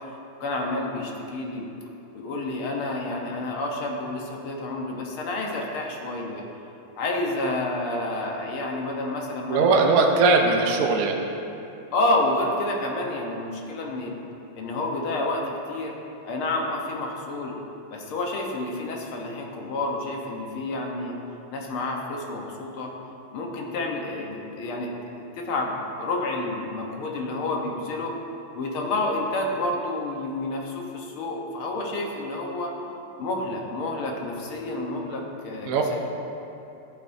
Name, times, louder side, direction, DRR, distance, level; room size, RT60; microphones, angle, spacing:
voice 1, 0.4-1.7 2.1-6.4 7.0-9.8 11.9-14.2 14.6-16.0 16.2-17.6 17.9-21.1 21.5-22.9 23.3-28.1 28.5-32.7 33.2-36.0, left 2 dB, 80° left, 0 dB, 2.0 m, -29 dB
voice 2, 9.5-11.2 35.7-35.8, right 4 dB, 60° right, 1 dB, 0.9 m, -19 dB
13.5 x 8.5 x 2.7 m, 2.9 s
omnidirectional pair, 2.3 m